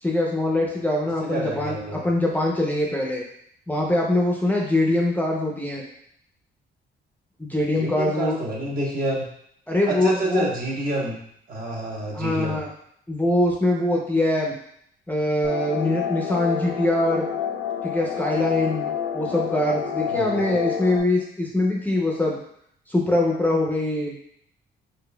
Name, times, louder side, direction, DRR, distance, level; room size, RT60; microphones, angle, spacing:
voice 1, 0.0-3.2 3.7-5.8 7.4-8.4 9.7-10.5 12.1-12.7 13.1-14.5 15.1-17.3 17.8-18.9 19.1-22.4 22.9-24.1, left 1 dB, 10° left, -2 dB, 0.6 m, -23 dB
voice 2, 1.2-2.0 7.8-9.2 9.9-11.2 11.5-12.6 20.1-20.5, right 1 dB, 45° right, -3 dB, 1.1 m, -28 dB
sound 1, 15.4-21.0, left 8 dB, 85° left, 0.7 m, -28 dB
4.0 x 3.2 x 2.2 m, 0.69 s
cardioid pair, 90°, 20 cm